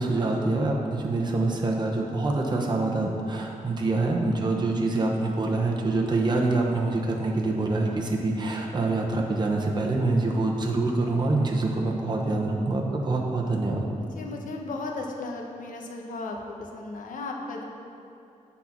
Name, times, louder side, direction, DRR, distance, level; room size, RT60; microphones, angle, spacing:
voice 1, 0.0-13.9, right 2 dB, 30° right, -1 dB, 0.9 m, -25 dB
voice 2, 14.2-17.6, left 3 dB, 75° left, 1 dB, 0.9 m, -35 dB
8.3 x 4.1 x 5.9 m, 2.7 s
wide cardioid pair, 115°, 14 cm